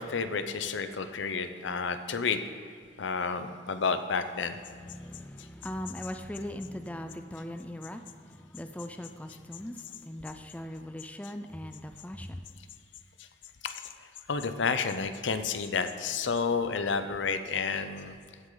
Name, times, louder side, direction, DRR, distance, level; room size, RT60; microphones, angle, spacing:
voice 1, 0.0-2.4 3.0-4.6 5.4-5.5 13.2-13.3 13.6-18.2, left 5 dB, 90° left, 10 dB, 0.6 m, -31 dB
voice 2, 4.7-12.5, left 1 dB, 10° left, 7 dB, 0.4 m, -40 dB
15.5 x 6.4 x 3.9 m, 2.2 s
head